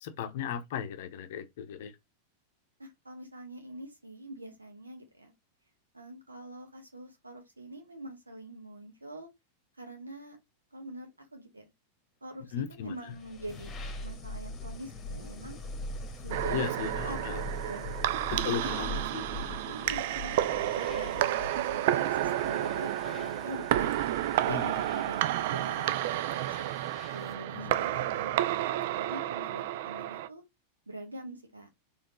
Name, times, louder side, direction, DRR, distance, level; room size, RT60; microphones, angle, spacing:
voice 1, 0.0-1.9 12.5-13.1 16.5-17.4 18.3-19.7 24.5-24.8 27.5-27.7, left 8 dB, 55° left, 0.7 m, -36 dB
voice 2, 2.8-5.3 5.9-9.3 9.8-10.4 10.7-11.6 12.2-13.7 14.0-15.6 16.2-17.4 17.6-18.5 19.7-21.4 21.7-23.9 24.4-26.7 27.1-28.7 29.0-30.4 30.9-31.7, right 1 dB, 80° right, 1.1 m, -44 dB
sound 1, 12.9-27.5, left 1 dB, 25° left, 1.2 m, -42 dB
sound 2, 16.3-30.3, right 13 dB, 50° right, 0.3 m, -31 dB
4.3 x 3.3 x 3.1 m
figure-of-eight pair, 90°, 0 cm